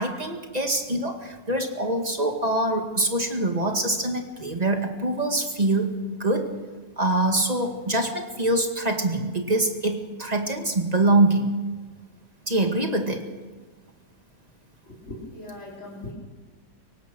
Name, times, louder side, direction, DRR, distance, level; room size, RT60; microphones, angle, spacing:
voice 1, 0.0-5.9 6.2-6.5 7.0-11.5 12.5-13.3, right 2 dB, 25° right, 4 dB, 2.1 m, -24 dB
voice 2, 15.1-16.1, left 2 dB, 40° left, -5 dB, 4.2 m, -39 dB
24.0 x 18.0 x 6.3 m, 1.3 s
omnidirectional pair, 1.8 m